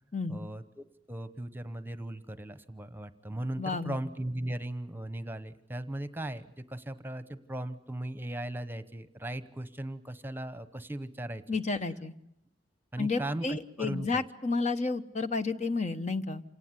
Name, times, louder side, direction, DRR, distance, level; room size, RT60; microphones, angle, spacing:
voice 1, 0.3-11.4 12.9-14.2, right 1 dB, 10° right, 13 dB, 1.0 m, -38 dB
voice 2, 3.6-4.0 11.5-12.1 13.0-16.4, left 3 dB, 40° left, 10 dB, 1.0 m, -31 dB
27.5 x 18.0 x 9.7 m, 0.78 s
head